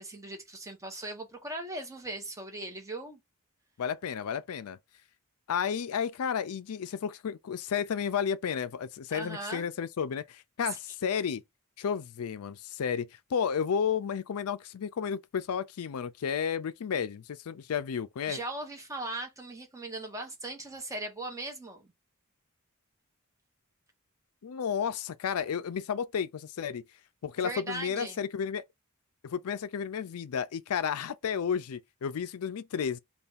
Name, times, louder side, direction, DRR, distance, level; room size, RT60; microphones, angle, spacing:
voice 1, 0.0-3.2 9.1-9.7 18.3-21.8 27.4-28.2, right 2 dB, 15° right, 1.0 m, -39 dB
voice 2, 3.8-4.8 5.5-11.4 11.8-18.4 24.4-26.8 27.2-28.6 29.2-33.0, left 7 dB, 75° left, 0.4 m, -32 dB
3.4 x 2.3 x 4.0 m
head